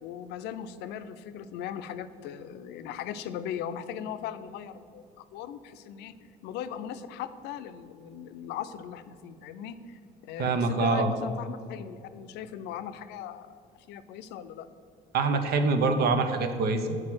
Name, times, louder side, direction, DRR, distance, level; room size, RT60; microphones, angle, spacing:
voice 1, 0.0-6.1 6.4-13.6 13.9-14.7, left 9 dB, 90° left, 11 dB, 0.5 m, -38 dB
voice 2, 10.4-11.1 15.1-17.0, right 3 dB, 70° right, 7 dB, 0.8 m, -25 dB
7.6 x 4.7 x 6.1 m, 2.5 s
cardioid pair, 110°, 17 cm